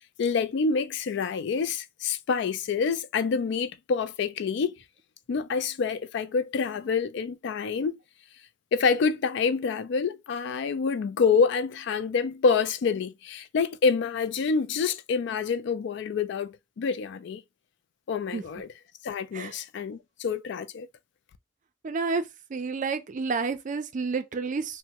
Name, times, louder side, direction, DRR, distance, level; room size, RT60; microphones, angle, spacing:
voice 1, 0.2-4.7 5.3-7.9 8.7-17.4 18.1-18.7 19.0-20.9, left 5 dB, 65° left, 0.3 m, -27 dB
voice 2, 21.8-22.2 22.5-24.8, right 4 dB, 45° right, 0.4 m, -30 dB
3.3 x 2.1 x 2.8 m
head